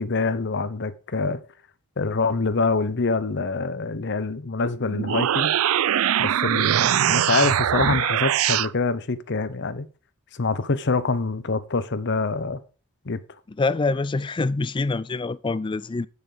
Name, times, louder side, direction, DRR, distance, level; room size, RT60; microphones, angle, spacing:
voice 1, 0.0-1.4 2.0-5.6 6.2-9.9 10.3-12.6 13.0-13.2, left 3 dB, 55° left, 0.8 m, -25 dB
sound 1, 4.9-8.7, right 10 dB, 70° right, 0.4 m, -22 dB
voice 2, 13.6-16.1, left 3 dB, 20° left, 0.4 m, -25 dB
9.2 x 6.5 x 5.1 m
head